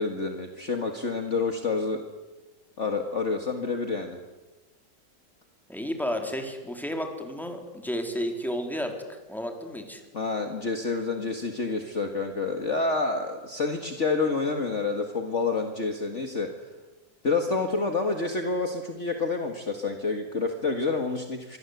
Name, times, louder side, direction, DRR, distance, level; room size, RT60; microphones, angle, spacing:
voice 1, 0.0-2.0 2.8-4.2 10.1-16.5 17.2-21.6, left 3 dB, 40° left, 5 dB, 2.1 m, -28 dB
voice 2, 5.7-10.0, equal, ahead, 4 dB, 4.0 m, -32 dB
27.0 x 24.0 x 8.2 m, 1.2 s
omnidirectional pair, 1.9 m